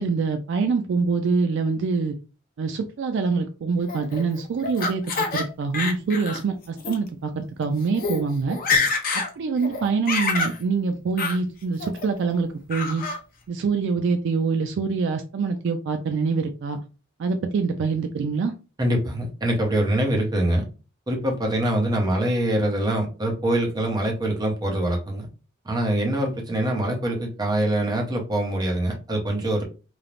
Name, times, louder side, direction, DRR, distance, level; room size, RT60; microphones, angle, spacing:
voice 1, 0.0-2.2 2.6-5.0 5.3-8.6 9.4-13.0 13.5-16.8 17.2-18.5, right 4 dB, 60° right, 7 dB, 0.3 m, -25 dB
Laughter, 3.9-5.4 5.7-6.4 6.8-6.9 7.6-7.7 7.9-8.2 8.5-9.3 9.6-10.6 11.2-11.4 11.8-12.3 12.7-13.2, left 4 dB, 45° left, 0.6 m, -26 dB
voice 2, 18.8-20.6 21.1-25.3 25.7-29.6, right 1 dB, 20° right, 1 dB, 0.7 m, -24 dB
3.1 x 2.0 x 2.4 m, 0.32 s
head